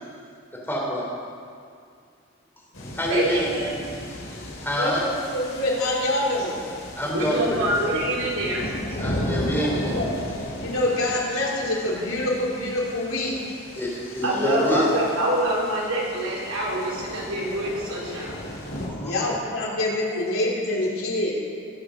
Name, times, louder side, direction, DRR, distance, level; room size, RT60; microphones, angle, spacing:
voice 1, 0.5-1.1 2.9-3.7 4.3-5.0 7.0-7.9 9.0-10.0 13.7-14.9 18.9-19.2 20.1-20.2, equal, 10° left, -4 dB, 3.2 m, -27 dB
sound 1, 2.7-18.9, left 1 dB, 60° left, 3.4 m, -35 dB
voice 2, 3.1-3.7 7.1-8.7 14.2-18.4, right 1 dB, 85° right, -5 dB, 4.1 m, -25 dB
voice 3, 5.3-6.7 9.6-10.2 10.6-13.5 19.0-21.3, left 1 dB, 75° left, -4 dB, 3.4 m, -26 dB
21.0 x 7.2 x 6.3 m, 2.3 s
head